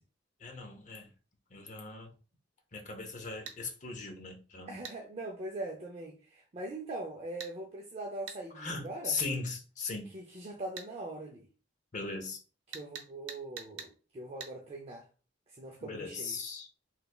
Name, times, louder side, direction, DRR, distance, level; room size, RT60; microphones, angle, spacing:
voice 1, 0.4-1.1 1.5-2.1 2.7-4.8 8.5-10.1 11.9-12.4 15.8-16.7, left 4 dB, 40° left, 0.7 m, -38 dB
sound 1, 3.5-3.6 4.8-5.0 7.4-7.5 8.3-8.4 10.8-10.9 12.7-13.9 14.4-14.5, right 7 dB, 90° right, 0.7 m, -43 dB
voice 2, 4.7-9.2 10.1-11.5 12.7-15.1 15.5-16.4, right 2 dB, 35° right, 0.5 m, -42 dB
3.3 x 3.2 x 2.3 m
head